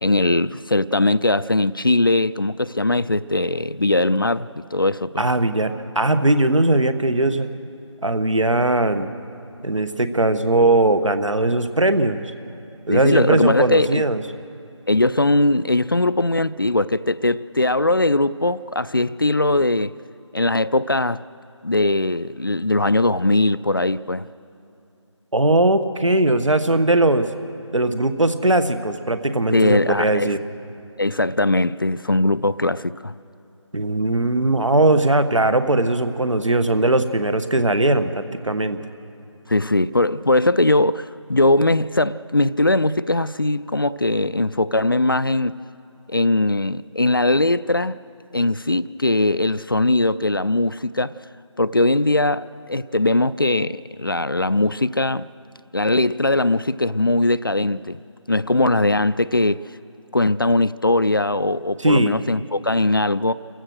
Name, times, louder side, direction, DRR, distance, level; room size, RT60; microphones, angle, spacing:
voice 1, 0.0-5.2 12.9-14.1 14.9-19.9 20.3-21.2 21.6-24.3 29.5-30.3 31.0-33.1 39.5-41.0 41.3-45.6 46.1-48.0 48.3-51.1 51.6-55.3 55.7-58.0 58.3-59.7 60.1-63.3, left 2 dB, 45° left, 0.4 m, -20 dB
voice 2, 5.2-7.5 8.0-9.1 9.6-12.3 12.9-14.2 25.3-27.3 27.7-30.4 33.7-38.8 61.8-62.2, right 2 dB, 75° right, 1.4 m, -19 dB
28.0 x 15.5 x 6.4 m
figure-of-eight pair, 170°, 16 cm